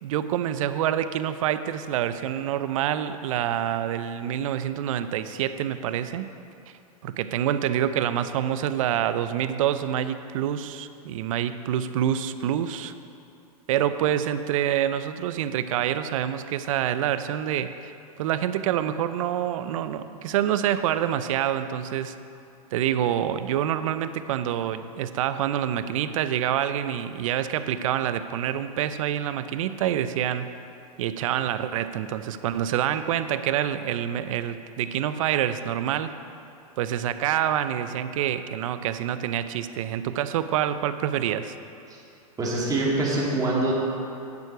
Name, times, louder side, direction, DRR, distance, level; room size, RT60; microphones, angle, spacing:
voice 1, 0.0-6.3 7.0-12.9 13.7-17.9 18.2-22.2 22.7-30.5 31.0-36.1 36.8-41.5, right 10 dB, 60° right, 12 dB, 0.6 m, -27 dB
voice 2, 42.4-43.7, right 2 dB, 20° right, -4 dB, 2.7 m, -24 dB
9.6 x 9.0 x 4.9 m, 2.7 s
hypercardioid pair, 110°, 20 cm